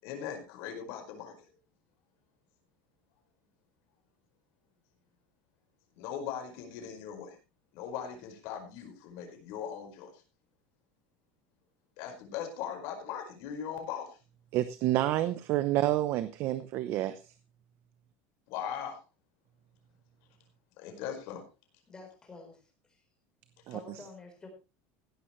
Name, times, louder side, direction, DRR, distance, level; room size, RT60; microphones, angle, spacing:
voice 1, 0.0-1.3 6.0-7.3 7.7-10.1 12.0-14.2 18.5-19.0 20.8-21.4, left 8 dB, 55° left, 4 dB, 5.1 m, -39 dB
voice 2, 14.5-17.2 23.7-23.8, right 14 dB, 40° right, 12 dB, 0.8 m, -29 dB
voice 3, 21.9-23.0 23.7-24.5, left 3 dB, 15° left, 3 dB, 4.3 m, -49 dB
16.5 x 12.0 x 3.2 m, 0.30 s
cardioid pair, 175°, 6 cm